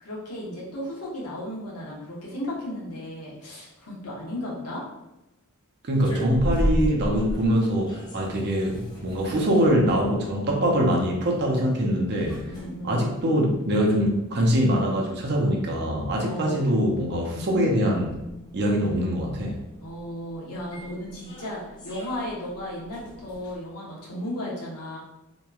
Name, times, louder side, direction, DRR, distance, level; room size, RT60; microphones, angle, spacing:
voice 1, 0.0-4.8 12.5-13.1 16.2-16.7 19.8-25.0, equal, 80° left, -5 dB, 0.9 m, -35 dB
sound 1, 5.9-23.6, equal, 20° left, 0.5 m, -37 dB
voice 2, 5.9-12.4 12.8-18.1 18.5-19.5, equal, 50° right, -1 dB, 0.5 m, -23 dB
2.9 x 2.2 x 2.3 m, 0.93 s
head